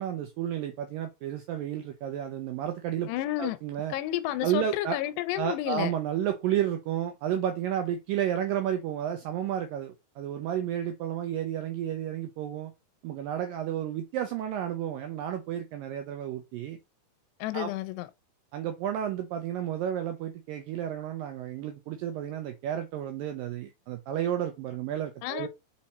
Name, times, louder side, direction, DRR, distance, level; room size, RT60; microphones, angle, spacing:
voice 1, 0.0-3.1 3.4-3.9 4.4-5.0 5.4-12.7 13.0-16.8 17.5-17.7 18.5-25.5, right 10 dB, 90° right, 2.0 m, -32 dB
voice 2, 3.1-3.6 3.9-5.9 17.4-18.1 25.2-25.5, left 15 dB, 90° left, 2.8 m, -31 dB
6.1 x 4.3 x 4.2 m
omnidirectional pair, 4.8 m